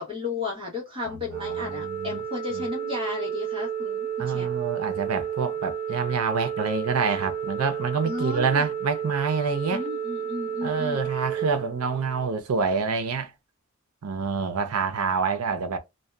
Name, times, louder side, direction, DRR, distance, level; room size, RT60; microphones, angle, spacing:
voice 1, 0.0-4.5 8.0-8.7 9.7-11.1, left 3 dB, 25° right, 1.1 m, -34 dB
Organ, 1.3-12.4, right 8 dB, 50° right, 0.8 m, -31 dB
voice 2, 1.4-2.2 2.5-2.7 4.2-9.8 10.6-13.3 14.0-15.8, right 5 dB, 90° right, 0.6 m, -27 dB
2.7 x 2.2 x 2.2 m
head